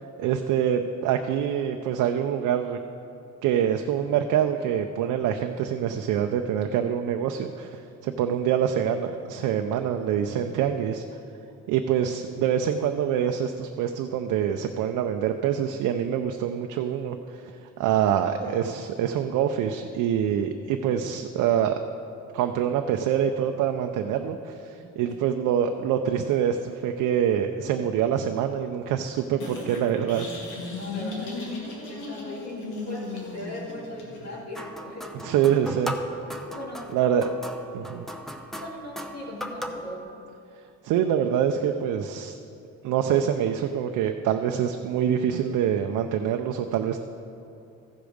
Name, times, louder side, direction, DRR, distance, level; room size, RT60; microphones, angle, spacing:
voice 1, 0.2-2.8 3.4-11.0 11.7-17.2 17.8-21.7 22.3-30.3 35.2-36.0 36.9-37.3 37.7-38.1 40.8-42.3 42.8-47.0, right 9 dB, 90° right, 5 dB, 0.5 m, -25 dB
voice 2, 24.7-25.1 30.6-32.6 32.9-35.5 36.5-36.9 38.6-40.0, left 1 dB, 60° left, -5 dB, 2.6 m, -39 dB
sound 1, 29.4-34.4, left 3 dB, 90° left, 2.0 m, -36 dB
sound 2, 34.5-40.0, equal, ahead, 0.7 m, -37 dB
14.5 x 5.1 x 6.3 m, 2.6 s
cardioid pair, 90°, 30 cm